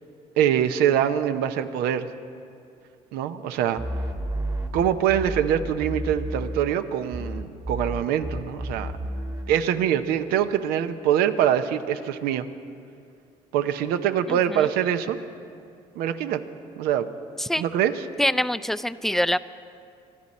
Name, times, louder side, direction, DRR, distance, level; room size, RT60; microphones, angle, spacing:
voice 1, 0.4-2.1 3.1-3.8 4.7-8.9 9.5-12.5 13.5-15.2 16.0-16.4 16.8-17.1 17.6-18.0, right 10 dB, 85° right, 10 dB, 0.7 m, -24 dB
sound 1, 3.8-6.8 7.1-9.7, right 1 dB, 25° right, 1.3 m, -31 dB
voice 2, 14.3-14.7 17.4-17.6 18.2-19.4, equal, ahead, 14 dB, 0.4 m, -25 dB
23.0 x 13.0 x 4.2 m, 2.5 s
supercardioid pair, 80°, 16 cm